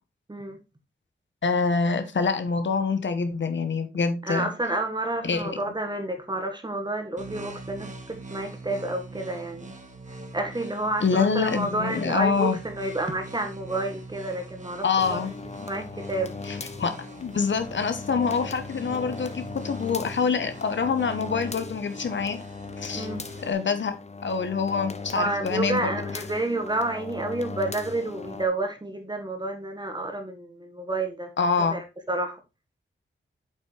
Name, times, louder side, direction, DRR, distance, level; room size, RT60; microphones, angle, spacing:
voice 1, 0.3-0.6 4.2-9.7 10.1-15.3 15.7-16.4 22.9-23.2 25.1-31.3 31.7-32.4, right 2 dB, 20° right, 1.6 m, -30 dB
voice 2, 1.4-4.5 5.2-5.6 11.0-12.6 14.8-15.3 16.8-16.9 17.2-22.4 22.8-23.1 23.4-23.9 24.2-25.9 31.4-31.8, left 5 dB, 65° left, 1.1 m, -25 dB
sound 1, 7.2-23.5, right 2 dB, 35° right, 1.8 m, -44 dB
sound 2, 15.0-28.5, left 4 dB, 35° left, 0.7 m, -38 dB
8.3 x 5.5 x 3.3 m
wide cardioid pair, 85°, 20 cm